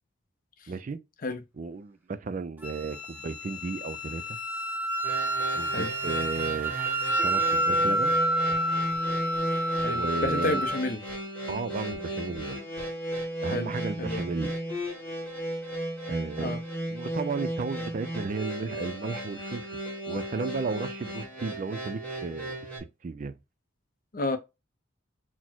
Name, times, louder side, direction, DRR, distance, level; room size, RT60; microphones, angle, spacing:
voice 1, 0.7-1.0 1.6-4.4 5.5-6.7 7.2-8.2 9.9-10.6 11.5-12.6 13.4-14.6 16.1-16.6 16.9-19.8 20.1-22.5 23.0-23.4, right 4 dB, 35° right, 0.3 m, -34 dB
Wind instrument woodwind instrument, 2.6-10.8, right 1 dB, 10° right, 0.7 m, -29 dB
sound 1, 5.0-22.8, right 1 dB, 5° left, 1.2 m, -35 dB
sound 2, 8.1-8.2 8.5-8.6 8.9-9.0 9.3-9.4 9.8-9.9 10.2-10.3 10.6-10.7 11.1-11.2 11.5-11.6 11.9-12.0 12.3-12.4 12.8-12.9, left 2 dB, 55° left, 1.0 m, -49 dB
voice 2, 9.8-11.0 13.5-14.3 16.4-16.6 24.1-24.4, left 2 dB, 40° left, 0.5 m, -31 dB
4.1 x 2.0 x 4.4 m
head